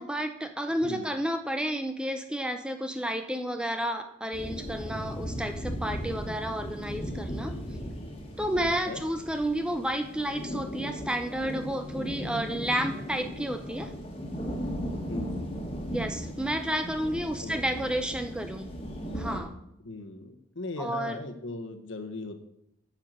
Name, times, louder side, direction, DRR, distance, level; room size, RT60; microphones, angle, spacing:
voice 1, 0.0-7.5 8.4-13.9 15.9-18.7 19.1-19.5 20.8-21.2, equal, 5° right, 7 dB, 0.5 m, -31 dB
sound 1, 4.3-19.4, equal, 25° left, 1.6 m, -37 dB
voice 2, 8.6-9.0 15.1-15.6 17.2-17.9 19.8-22.4, left 2 dB, 65° left, 7 dB, 1.2 m, -39 dB
9.1 x 5.7 x 7.7 m, 0.77 s
head